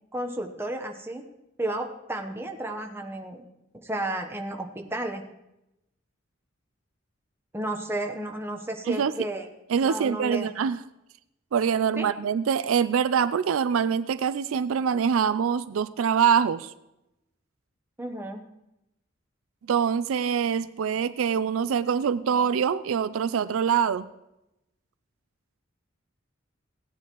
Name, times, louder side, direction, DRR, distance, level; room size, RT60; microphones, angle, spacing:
voice 1, 0.1-1.2 1.6-3.4 3.8-5.2 7.5-9.5 9.8-10.5 12.0-12.1 18.0-18.4, right 1 dB, 10° right, 3 dB, 1.0 m, -32 dB
voice 2, 9.7-10.8 11.5-16.7 19.7-24.1, right 7 dB, 85° right, 15 dB, 0.4 m, -24 dB
16.5 x 9.6 x 3.0 m, 0.89 s
head